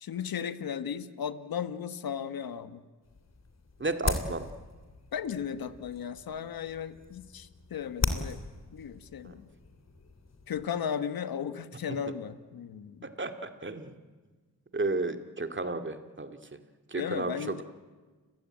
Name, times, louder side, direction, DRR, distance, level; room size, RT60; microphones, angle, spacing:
voice 1, 0.0-2.8 5.1-8.4 8.7-9.5 10.5-13.1 17.0-17.6, left 8 dB, 70° left, 12 dB, 1.4 m, -36 dB
sound 1, 3.0-10.7, left 4 dB, 45° left, 3.0 m, -38 dB
voice 2, 3.8-4.5 9.2-9.3 13.2-13.3 13.6-13.9 14.7-16.3 16.9-17.6, right 3 dB, 30° right, 7 dB, 2.3 m, -32 dB
30.0 x 16.0 x 9.0 m, 1.3 s
cardioid pair, 60°, 37 cm